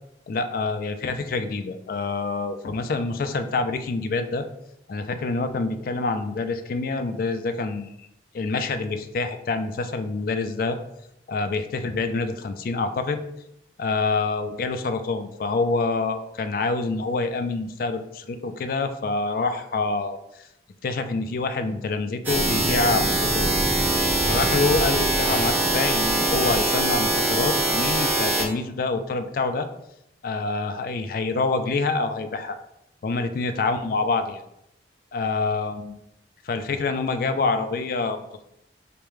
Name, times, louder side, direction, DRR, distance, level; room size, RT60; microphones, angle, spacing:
voice 1, 0.3-4.4 4.9-8.1 8.3-10.8 11.3-13.2 13.8-20.5 20.8-23.5 24.2-29.7 30.2-32.6 33.0-34.4 35.1-35.9 36.4-38.2, left 3 dB, 50° left, 9 dB, 0.3 m, -26 dB
sound 1, 22.2-28.4, right 2 dB, 10° right, 0.7 m, -22 dB
5.0 x 2.2 x 3.1 m, 0.80 s
head